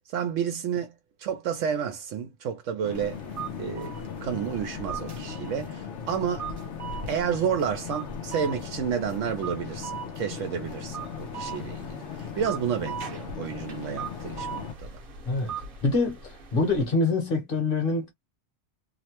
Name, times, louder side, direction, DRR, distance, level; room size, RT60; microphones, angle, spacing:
voice 1, 0.1-0.9 1.2-3.2 3.6-3.9 4.2-6.5 7.1-15.0, right 7 dB, 85° right, 1.0 m, -30 dB
sound 1, 2.8-14.7, left 7 dB, 70° left, 0.9 m, -38 dB
sound 2, 2.9-16.9, right 6 dB, 50° right, 0.9 m, -40 dB
voice 2, 15.2-18.1, left 3 dB, 50° left, 1.2 m, -26 dB
2.8 x 2.1 x 2.8 m
omnidirectional pair, 1.3 m